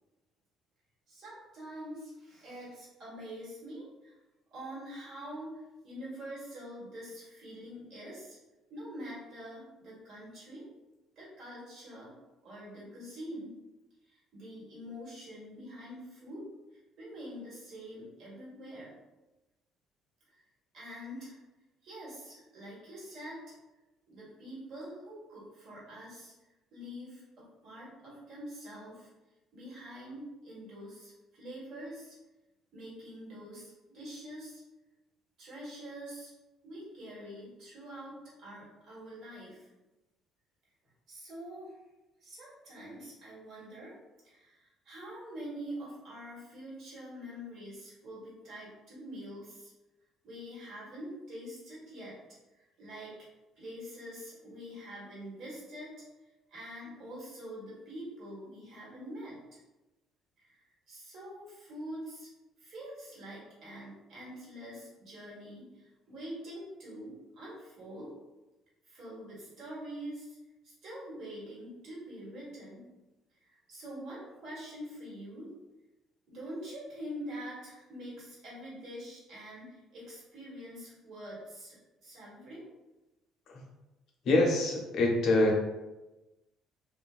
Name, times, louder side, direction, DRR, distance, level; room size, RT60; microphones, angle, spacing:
voice 1, 1.1-4.1 4.5-8.4 8.7-10.6 11.1-12.1 12.4-13.6 14.1-16.4 16.7-18.9 20.3-20.4 20.7-21.4 21.8-23.5 24.1-26.3 26.7-29.1 29.5-32.1 32.7-34.6 35.4-36.3 36.6-39.7 41.1-41.7 42.2-43.9 44.2-49.7 50.2-52.2 52.5-53.2 53.5-55.9 56.5-59.6 60.4-62.3 62.6-68.1 68.8-70.4 70.6-72.9 73.4-75.5 76.3-82.6, equal, 60° right, -7 dB, 1.3 m, -45 dB
voice 2, 84.2-85.6, left 2 dB, 60° left, 0 dB, 0.6 m, -25 dB
2.5 x 2.4 x 2.3 m, 1.1 s
hypercardioid pair, 65°, 0 cm